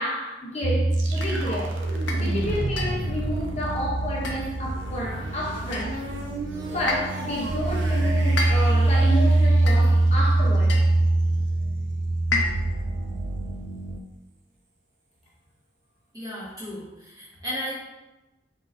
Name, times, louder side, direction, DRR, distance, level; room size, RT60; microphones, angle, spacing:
voice 1, 0.0-6.0 6.7-10.8, equal, 35° left, -4 dB, 0.7 m, -30 dB
sound 1, 0.6-14.0, right 2 dB, 35° right, 0.3 m, -24 dB
sound 2, 0.9-10.7, right 1 dB, 85° right, 0.7 m, -34 dB
sound 3, 1.2-1.4 2.1-2.3 2.8-3.1 4.2-4.7 5.7-6.1 6.9-7.3 8.4-8.9 9.7-10.1 10.7-11.0 12.3-12.8, left 3 dB, 85° left, 0.6 m, -31 dB
voice 2, 16.1-17.7, equal, 20° right, -7 dB, 1.4 m, -34 dB
5.5 x 3.7 x 2.5 m, 1.0 s
head